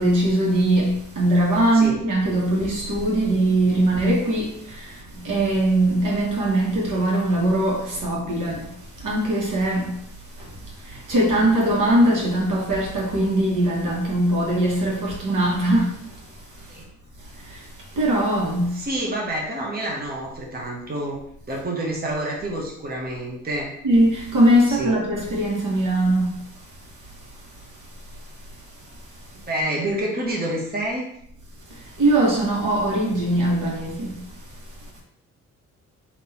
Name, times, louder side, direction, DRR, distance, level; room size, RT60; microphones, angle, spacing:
voice 1, 0.0-8.7 9.0-10.0 10.4-10.5 10.8-16.0 17.4-17.6 17.9-18.8 23.8-26.3 32.0-34.2, right 1 dB, 55° right, 1.7 m, -21 dB
voice 2, 18.7-21.2 21.5-23.7 24.7-25.0 29.3-31.0, right 1 dB, 25° right, 1.3 m, -28 dB
3.7 x 3.0 x 4.3 m
hypercardioid pair, 50°, 36 cm